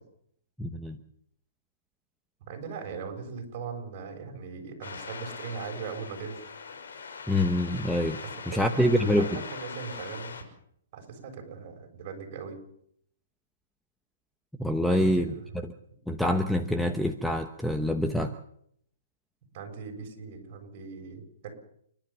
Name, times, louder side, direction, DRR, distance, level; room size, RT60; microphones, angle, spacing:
voice 1, 0.6-1.0 7.3-8.2 8.5-9.4 14.6-15.3 16.1-18.3, left 1 dB, ahead, 6 dB, 0.9 m, -26 dB
voice 2, 2.4-6.4 8.5-10.4 10.9-12.6 14.8-15.6 19.5-21.5, right 5 dB, 40° right, 3 dB, 7.2 m, -39 dB
sound 1, 4.8-10.4, left 5 dB, 75° left, 5.8 m, -41 dB
30.0 x 12.0 x 7.4 m, 0.71 s
hypercardioid pair, 155°, 0 cm